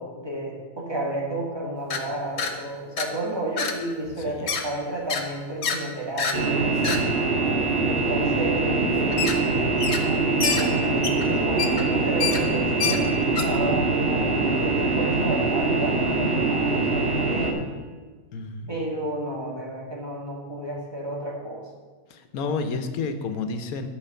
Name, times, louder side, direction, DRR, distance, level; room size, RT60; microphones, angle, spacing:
voice 1, 0.0-6.7 7.8-9.7 10.2-17.6 18.7-21.6, right 1 dB, 20° right, -3 dB, 1.9 m, -32 dB
sound 1, 1.9-2.0 2.4-2.5 3.0-3.1 3.6-3.8 4.1-4.6 5.1-5.2 5.6-5.8 6.2-6.4 6.8-7.0 9.1-9.4 9.8-10.1 10.4-13.4, left 6 dB, 55° left, 1.1 m, -27 dB
sound 2, 6.3-17.5, right 3 dB, 45° right, 1.7 m, -23 dB
voice 2, 18.3-18.7 22.1-23.9, left 4 dB, 90° left, 8 dB, 1.3 m, -30 dB
12.0 x 5.1 x 6.8 m, 1.4 s
omnidirectional pair, 1.5 m